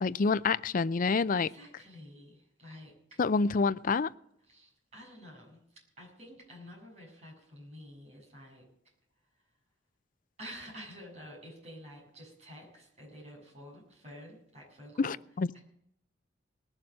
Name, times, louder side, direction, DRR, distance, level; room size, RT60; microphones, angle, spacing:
voice 1, 0.0-1.5 3.2-4.1 15.0-15.5, left 4 dB, 45° left, 17 dB, 0.5 m, -27 dB
voice 2, 1.3-3.2 4.5-8.7 10.4-15.2 15.5-15.6, equal, 40° right, -3 dB, 7.5 m, -50 dB
19.5 x 7.3 x 7.7 m, 0.76 s
head